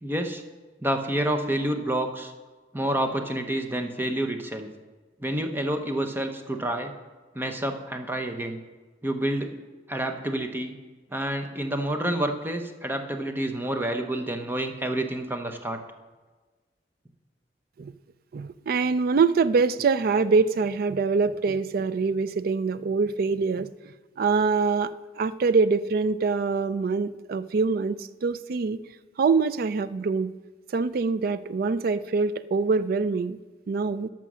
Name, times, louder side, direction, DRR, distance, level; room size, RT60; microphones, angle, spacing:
voice 1, 0.0-0.4 0.8-2.3 2.7-4.7 5.2-6.9 7.3-8.6 9.0-9.6 9.9-10.7 11.1-15.8, right 1 dB, 10° right, 6 dB, 0.8 m, -28 dB
voice 2, 18.3-23.7 24.2-28.8 29.2-30.3 30.7-33.4 33.7-34.1, right 4 dB, 55° right, 15 dB, 0.4 m, -24 dB
11.5 x 6.1 x 6.2 m, 1.3 s
head